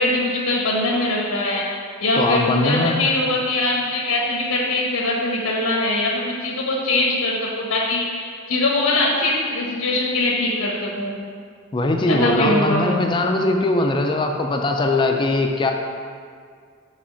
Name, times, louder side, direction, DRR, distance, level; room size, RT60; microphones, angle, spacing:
voice 1, 0.0-1.6 2.0-11.2 12.1-12.9, left 2 dB, 90° left, -3 dB, 1.0 m, -22 dB
voice 2, 2.2-3.0 11.7-15.7, left 2 dB, 20° left, 3 dB, 0.4 m, -20 dB
5.0 x 4.2 x 5.6 m, 2.1 s
head